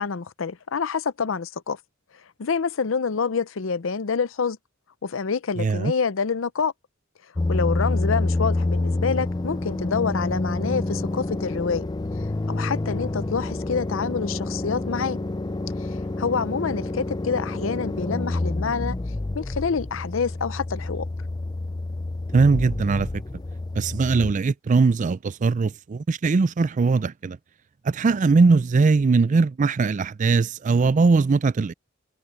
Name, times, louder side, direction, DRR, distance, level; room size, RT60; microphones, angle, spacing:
voice 1, 0.0-1.8 2.4-4.6 5.0-6.7 7.5-11.9 12.5-15.2 15.8-19.0 19.3-21.1, left 5 dB, 75° left, 0.6 m, -27 dB
voice 2, 5.6-5.9 22.3-23.1 23.7-27.4 27.8-31.7, right 4 dB, 40° right, 0.4 m, -20 dB
sound 1, 7.4-24.3, left 2 dB, 20° left, 0.4 m, -28 dB
head